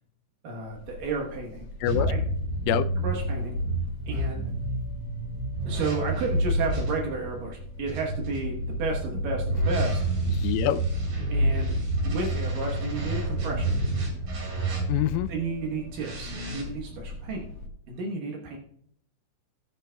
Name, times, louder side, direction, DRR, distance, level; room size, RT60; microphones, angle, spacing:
voice 1, 0.4-1.7 2.0-2.2 3.0-3.6 4.1-4.5 5.7-10.0 11.3-11.7 12.0-13.8 15.3-17.5 17.9-18.6, right 3 dB, 80° right, 0 dB, 1.9 m, -32 dB
sound 1, 0.6-17.7, left 2 dB, 65° left, 2.0 m, -43 dB
sound 2, 1.8-6.9 7.9-15.2 15.9-16.6, right 1 dB, 45° right, 4.7 m, -28 dB
voice 2, 10.3-10.8 14.9-15.3, left 13 dB, 90° left, 13 dB, 3.2 m, -25 dB
20.0 x 8.2 x 2.3 m, 0.67 s
omnidirectional pair, 5.8 m